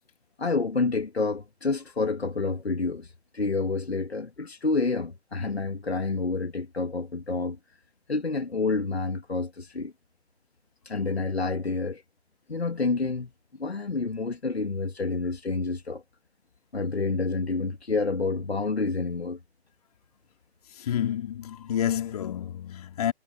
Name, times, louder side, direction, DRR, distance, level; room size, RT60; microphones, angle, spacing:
voice 1, 0.4-7.6 8.1-9.9 10.8-12.0 12.5-13.3 13.6-16.0 16.7-19.4, left 3 dB, 70° left, 2.7 m, -28 dB
voice 2, 20.8-23.1, left 10 dB, 35° left, 3.9 m, -29 dB
figure-of-eight pair, 140°, 33 cm